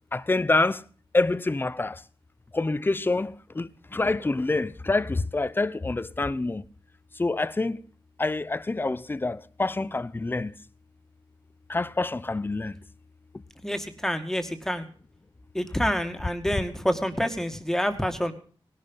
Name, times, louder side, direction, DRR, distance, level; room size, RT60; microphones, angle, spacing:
voice 1, 0.1-0.8 1.1-2.0 2.5-6.6 7.2-7.8 8.2-10.5 11.7-12.8, left 2 dB, 20° left, 0.8 m, -26 dB
voice 2, 13.6-14.9 15.5-18.3, equal, 5° left, 2.2 m, -28 dB
19.5 x 12.0 x 5.6 m
wide cardioid pair, 135°, 9 cm